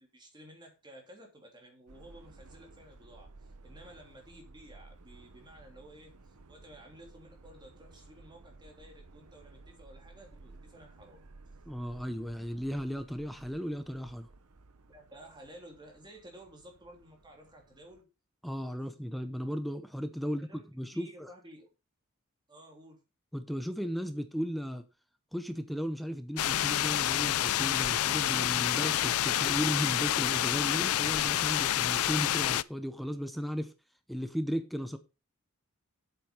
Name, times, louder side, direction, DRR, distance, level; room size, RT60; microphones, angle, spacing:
voice 1, 0.0-11.2 14.9-18.1 20.4-20.6 20.9-21.7 22.5-23.0, right 1 dB, 20° right, 3.2 m, -53 dB
Subway metro underground, 1.9-18.0, right 3 dB, 90° right, 1.0 m, -56 dB
voice 2, 11.7-14.3 18.4-21.3 23.3-24.8 25.3-33.7 34.1-35.0, equal, ahead, 0.8 m, -35 dB
sound 1, 26.4-32.6, left 12 dB, 75° left, 0.4 m, -28 dB
8.2 x 7.8 x 5.5 m
head